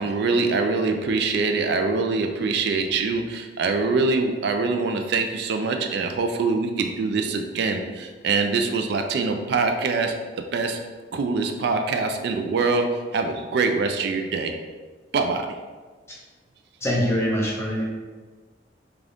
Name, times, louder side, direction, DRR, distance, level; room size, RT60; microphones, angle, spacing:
voice 1, 0.0-10.1 10.5-10.8 11.1-12.9 13.1-14.5 15.1-15.5, right 4 dB, 65° right, 5 dB, 0.3 m, -24 dB
voice 2, 16.8-17.9, equal, 15° left, -4 dB, 0.8 m, -24 dB
3.8 x 2.4 x 3.4 m, 1.4 s
head